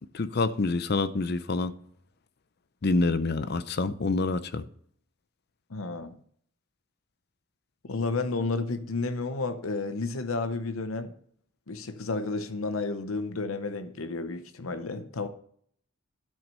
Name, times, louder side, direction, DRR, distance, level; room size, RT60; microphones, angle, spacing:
voice 1, 0.1-1.7 2.8-4.6, left 3 dB, 50° left, 0.6 m, -27 dB
voice 2, 5.7-6.2 7.8-11.1 11.7-15.3, left 3 dB, 90° left, 0.8 m, -31 dB
12.0 x 6.1 x 5.5 m
head